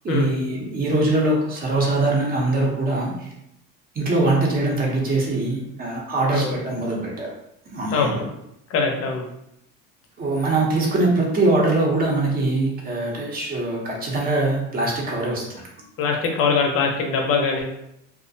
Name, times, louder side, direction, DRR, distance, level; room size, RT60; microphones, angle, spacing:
voice 1, 0.0-3.3 3.9-7.3 7.7-8.1 10.2-15.7, right 2 dB, 30° right, -2 dB, 0.7 m, -22 dB
voice 2, 7.9-8.3 8.7-9.2 16.0-17.6, left 4 dB, 50° left, 2 dB, 0.6 m, -22 dB
2.4 x 2.1 x 2.6 m, 0.81 s
cardioid pair, 125°, 29 cm